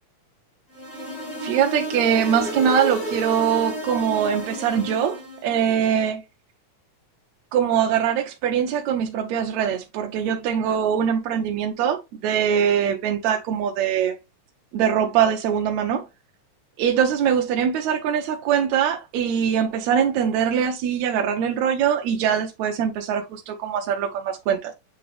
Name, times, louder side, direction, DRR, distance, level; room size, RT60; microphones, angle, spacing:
sound 1, 0.7-5.5, right 1 dB, 25° left, 1.6 m, -32 dB
voice 1, 1.4-6.2 7.5-14.2 14.7-16.0 16.8-24.7, right 8 dB, 75° right, 1.8 m, -22 dB
7.8 x 3.9 x 3.2 m
omnidirectional pair, 3.7 m